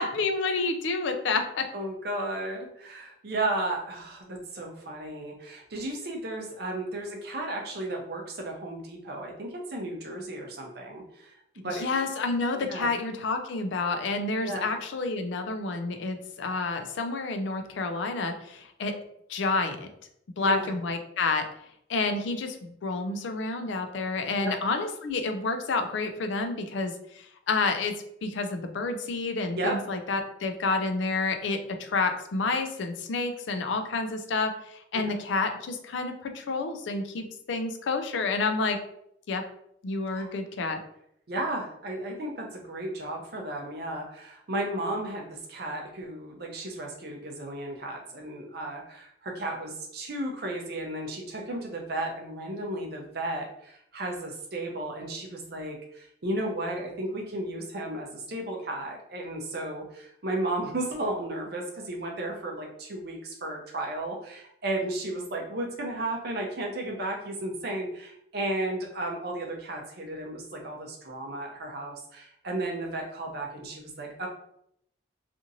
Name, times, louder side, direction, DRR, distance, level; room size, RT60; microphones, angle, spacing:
voice 1, 0.0-1.7 11.7-18.9 19.3-19.9 20.4-21.4 21.9-27.9 28.2-38.8 39.3-39.4 39.8-40.8, left 3 dB, 70° left, 6 dB, 0.4 m, -29 dB
voice 2, 1.7-11.9 12.7-12.9 14.4-14.7 20.4-20.7 24.4-24.5 29.5-29.8 34.9-35.0 40.1-40.3 41.3-74.3, right 1 dB, 55° right, 1 dB, 0.6 m, -34 dB
2.9 x 2.5 x 2.6 m, 0.73 s
head